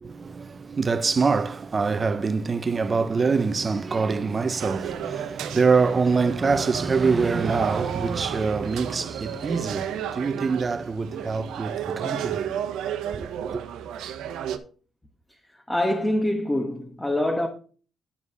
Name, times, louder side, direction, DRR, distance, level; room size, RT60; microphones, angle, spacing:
voice 1, 0.0-12.8 13.1-13.6, right 4 dB, 35° right, 0.6 m, -25 dB
sound 1, 4.6-14.6, right 9 dB, 85° right, 0.9 m, -33 dB
voice 2, 15.7-17.5, left 1 dB, 10° left, 1.3 m, -24 dB
9.9 x 5.0 x 4.8 m
cardioid pair, 90°, 0 cm